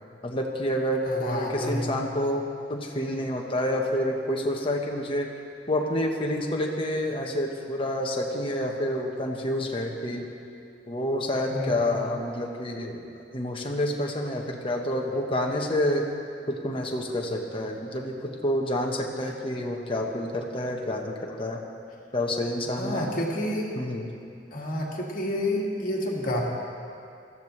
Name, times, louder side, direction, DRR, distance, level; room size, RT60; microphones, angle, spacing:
voice 1, 0.2-5.3 5.7-10.3 10.9-13.0 13.3-16.1 16.5-21.6 22.1-23.1 23.7-24.1, left 1 dB, 30° left, 0 dB, 1.3 m, -28 dB
voice 2, 1.0-1.8 11.5-12.1 22.6-23.7 24.5-26.4, left 1 dB, 50° left, -2 dB, 2.1 m, -29 dB
19.5 x 13.5 x 3.3 m, 2.5 s
head